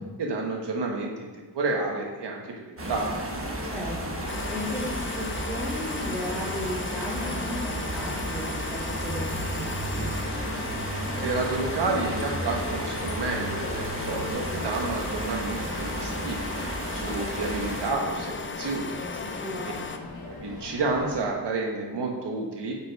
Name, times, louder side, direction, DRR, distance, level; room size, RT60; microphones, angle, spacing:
voice 1, 0.2-3.3 11.2-16.5 16.9-19.1 20.2-22.7, right 3 dB, 85° right, 0 dB, 1.3 m, -30 dB
sound 1, 2.8-21.2, left 3 dB, 60° left, 1.2 m, -40 dB
sound 2, 2.8-17.9, right 2 dB, 35° right, 0.9 m, -34 dB
sound 3, 4.3-20.0, left 4 dB, 30° left, 0.4 m, -36 dB
voice 2, 4.5-10.1 19.4-19.8, equal, 5° left, -7 dB, 2.5 m, -35 dB
6.9 x 5.6 x 4.6 m, 1.4 s
wide cardioid pair, 165°, 40 cm